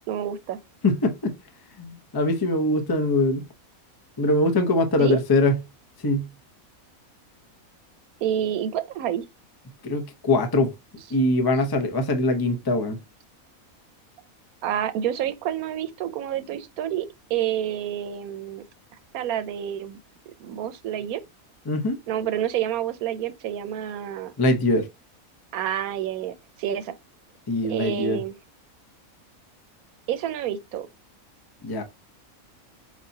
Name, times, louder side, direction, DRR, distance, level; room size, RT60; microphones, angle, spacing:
voice 1, 0.1-0.6 5.0-5.2 8.2-9.3 14.6-18.6 19.1-20.0 20.4-21.2 22.1-24.3 25.5-26.9 27.7-28.4 30.1-30.9, right 10 dB, 85° right, 1.1 m, -28 dB
voice 2, 0.8-1.3 1.8-3.5 4.2-5.6 6.0-6.3 9.8-10.7 11.1-13.0 21.7-22.0 24.4-24.9 27.5-28.2 31.6-31.8, left 2 dB, 25° left, 0.6 m, -22 dB
4.5 x 4.2 x 2.7 m
omnidirectional pair, 1.5 m